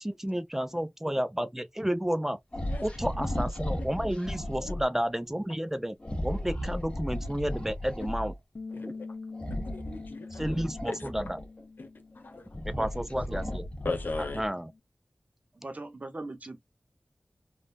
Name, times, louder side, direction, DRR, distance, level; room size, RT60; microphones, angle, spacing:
voice 1, 0.0-2.4 2.8-6.0 6.2-8.3 8.8-8.9 9.5-9.6 10.3-11.4 12.6-13.7 14.3-14.7, equal, 10° right, 0.4 m, -31 dB
sound 1, 2.5-4.9 6.0-8.4 9.3-11.6 12.2-14.6, left 1 dB, 30° left, 1.3 m, -35 dB
Bass guitar, 8.5-14.8, left 3 dB, 65° left, 0.6 m, -45 dB
voice 2, 8.7-9.1 9.6-10.6 10.8-11.1 11.8-11.9 12.1-12.5 13.8-14.4, left 3 dB, 90° left, 0.9 m, -37 dB
voice 3, 12.8-13.6 15.5-16.6, right 2 dB, 50° right, 0.9 m, -41 dB
3.6 x 2.4 x 2.6 m
wide cardioid pair, 65°, 3 cm